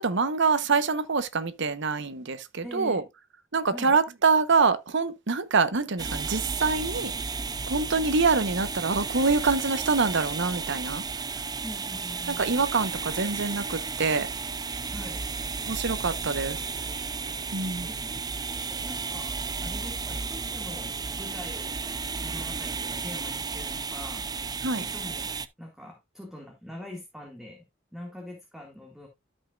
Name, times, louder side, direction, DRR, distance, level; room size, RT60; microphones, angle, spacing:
voice 1, 0.0-3.0 3.5-7.1 7.7-11.0 12.3-14.3 15.7-16.6 17.5-17.9 24.6-24.8, right 4 dB, 65° right, 1.0 m, -25 dB
voice 2, 2.6-3.0 3.7-4.0 11.6-12.4 14.9-15.2 17.1-19.3 19.6-21.8 22.2-24.2 24.8-27.6 27.9-29.1, left 1 dB, ahead, 2.0 m, -43 dB
sound 1, 6.0-25.5, right 4 dB, 20° right, 0.5 m, -33 dB
13.5 x 5.6 x 2.4 m
head